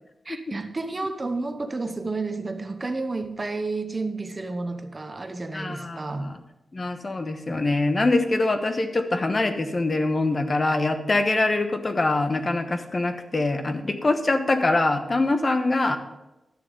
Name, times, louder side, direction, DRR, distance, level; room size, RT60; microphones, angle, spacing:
voice 1, 0.2-6.3, right 3 dB, 30° right, 1.0 m, -31 dB
voice 2, 5.5-6.4 6.7-16.0, left 2 dB, 35° left, 1.1 m, -24 dB
11.5 x 6.7 x 5.4 m
wide cardioid pair, 120°, 0 cm